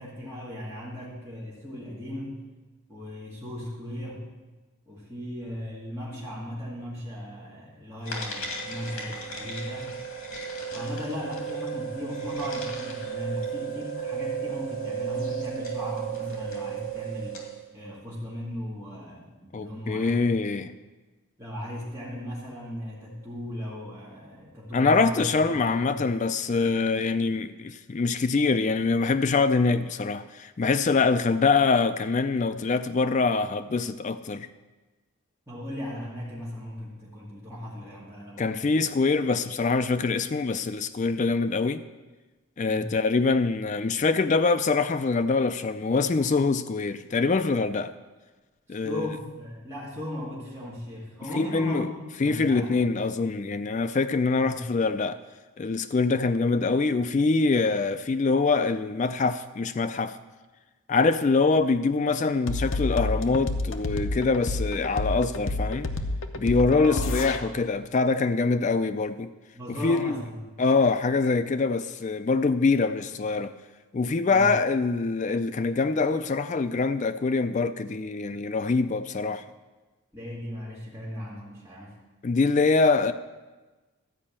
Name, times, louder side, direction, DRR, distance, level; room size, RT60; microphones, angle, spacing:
voice 1, 0.0-2.4 2.9-4.2 4.9-10.0 10.7-17.4 17.7-20.4 21.4-25.2 25.6-26.1 35.5-38.9 42.6-42.9 48.7-51.9 52.2-52.9 54.4-54.8 66.6-67.6 69.5-70.4 74.3-74.5 80.1-81.9, left 1 dB, 10° right, 2.2 m, -37 dB
sound 1, 8.0-17.6, right 6 dB, 75° left, 2.4 m, -34 dB
voice 2, 19.5-20.7 24.7-34.5 38.4-41.8 42.6-47.9 48.7-49.1 51.3-51.9 52.2-55.2 55.6-60.2 60.9-65.9 66.3-69.3 69.8-70.2 70.6-73.5 73.9-79.4 82.2-83.1, left 4 dB, 35° left, 0.3 m, -24 dB
sound 2, 62.5-67.4, left 2 dB, 60° left, 0.7 m, -28 dB
12.5 x 5.2 x 8.6 m
head